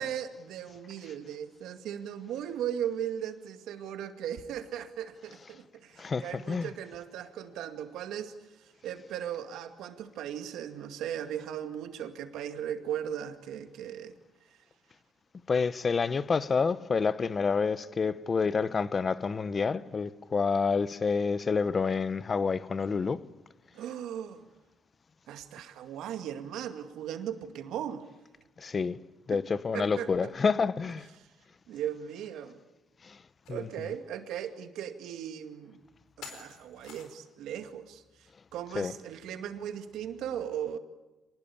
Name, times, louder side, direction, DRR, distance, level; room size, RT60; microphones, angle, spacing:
voice 1, 0.0-8.3 8.6-14.1 23.7-24.4 25.3-28.1 29.3-29.4 29.7-30.3 31.7-32.6 33.5-35.8 36.2-38.0 38.5-40.8, right 9 dB, 85° right, 2.2 m, -37 dB
voice 2, 6.0-6.7 15.5-23.2 28.6-29.0 29.3-31.1 33.0-33.2 33.5-34.0 38.7-39.0, left 5 dB, 40° left, 1.0 m, -28 dB
Glass scrape + Brick into glass, 33.5-33.6 34.1-34.2 35.2-35.3 36.2-37.3, left 7 dB, 85° left, 4.4 m, -48 dB
25.0 x 20.0 x 8.6 m
cardioid pair, 90°, 0 cm